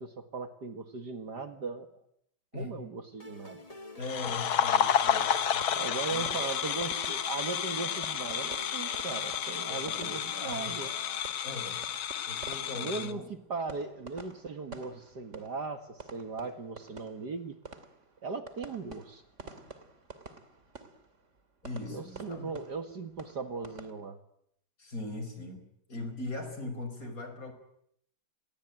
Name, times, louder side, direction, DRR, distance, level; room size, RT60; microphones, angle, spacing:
voice 1, 0.0-1.9 2.5-3.6 5.7-10.9 12.8-17.6 18.2-19.2 21.9-24.2, right 4 dB, 50° right, 8 dB, 2.3 m, -38 dB
sound 1, 3.2-11.2, left 2 dB, 15° left, 2.3 m, -48 dB
voice 2, 3.9-5.7 6.1-6.6 9.5-10.7 11.4-11.9 12.3-13.3 21.6-22.5 24.8-27.5, left 2 dB, 40° left, 7 dB, 5.4 m, -40 dB
sound 2, 4.0-13.1, left 9 dB, 70° left, 2.1 m, -31 dB
sound 3, 5.1-23.9, right 3 dB, 35° right, 2.9 m, -50 dB
29.0 x 22.0 x 9.2 m, 0.74 s
omnidirectional pair, 2.4 m